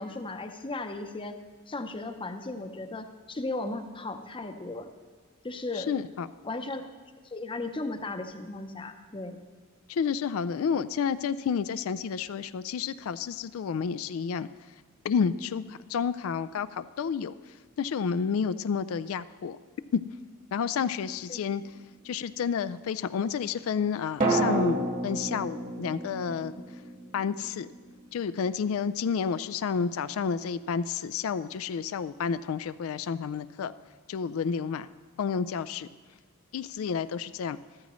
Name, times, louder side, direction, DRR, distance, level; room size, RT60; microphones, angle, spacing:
voice 1, 0.0-1.4 1.7-4.9 5.4-5.9 6.4-6.8 7.2-9.4 21.3-21.4, left 2 dB, 25° left, 8 dB, 0.7 m, -36 dB
voice 2, 5.9-6.3 9.9-14.5 15.0-17.3 17.8-19.6 20.5-21.6 22.1-26.5 27.1-27.7 28.1-33.7 34.1-34.9 35.2-35.9 36.5-37.6, left 6 dB, 75° left, 14 dB, 0.3 m, -30 dB
sound 1, 20.7-21.8 24.2-28.2 28.4-28.5, right 2 dB, 40° right, 1.5 m, -31 dB
14.0 x 13.5 x 3.1 m, 1.4 s
head